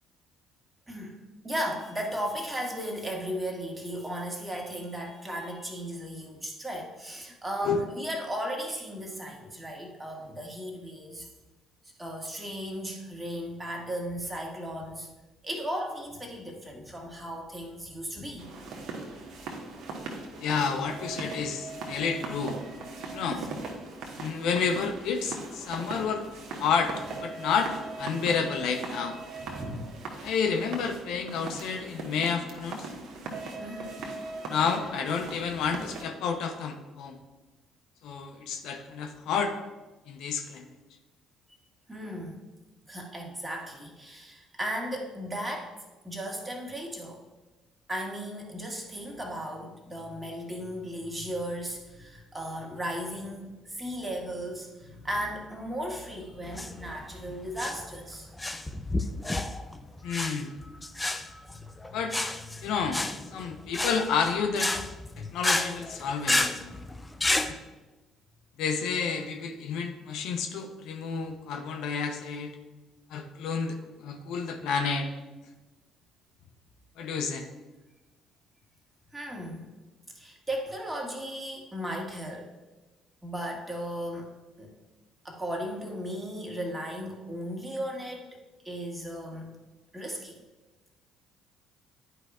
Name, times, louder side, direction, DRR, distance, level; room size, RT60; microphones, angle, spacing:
voice 1, 0.9-11.3 12.0-15.1 15.4-18.5 23.4-23.5 29.6-30.0 33.6-33.9 41.9-42.4 42.9-45.7 46.0-47.2 47.9-58.3 61.6-61.7 62.5-62.7 65.1-65.3 79.1-79.7 80.2-82.5 83.2-84.3 84.6-84.7 85.2-88.3 88.6-89.6 89.9-90.3, equal, 15° right, 0 dB, 1.8 m, -36 dB
sound 1, 18.4-36.0, right 3 dB, 55° right, 1.2 m, -39 dB
voice 2, 20.4-22.6 23.1-23.4 24.2-26.3 26.6-26.9 27.2-27.7 28.0-29.2 30.2-32.9 34.5-37.2 38.0-39.5 40.1-40.7 60.0-60.6 61.9-62.1 62.6-63.0 63.3-64.7 65.2-66.7 67.5-67.6 68.6-72.5 73.1-75.1 77.0-77.5, left 6 dB, 65° left, 5 dB, 0.6 m, -30 dB
sound 2, 56.4-67.5, left 2 dB, 15° left, 0.6 m, -31 dB
10.5 x 5.0 x 2.4 m, 1.2 s
hypercardioid pair, 50°, 0 cm